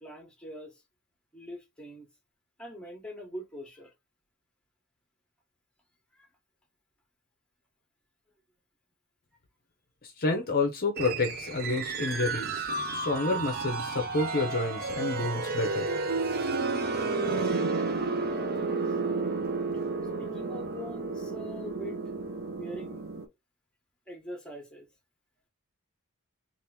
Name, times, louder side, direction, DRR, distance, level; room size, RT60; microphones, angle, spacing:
voice 1, 0.0-0.8 1.3-2.1 2.6-3.9 6.1-6.3 18.8-19.0 20.2-22.0 22.5-23.0 24.1-24.9, equal, 5° left, 1.0 m, -43 dB
voice 2, 10.0-15.9, left 3 dB, 40° left, 0.6 m, -29 dB
sound 1, 11.0-23.3, right 3 dB, 45° right, 0.6 m, -31 dB
2.9 x 2.5 x 3.3 m
head